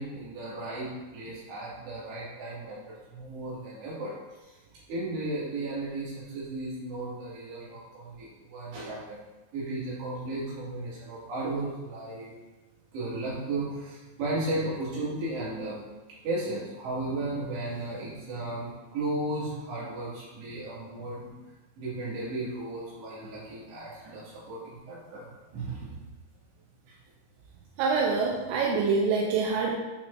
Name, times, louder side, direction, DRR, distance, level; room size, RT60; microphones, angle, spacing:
voice 1, 0.0-4.1 4.4-4.5 4.9-9.2 9.5-12.3 12.9-15.8 16.1-21.3 21.8-25.3 25.5-26.0, right 2 dB, 70° right, -8 dB, 4.6 m, -35 dB
voice 2, 27.8-29.8, right 4 dB, 85° right, -1 dB, 2.9 m, -25 dB
9.2 x 6.2 x 2.7 m, 1.2 s
omnidirectional pair, 5.2 m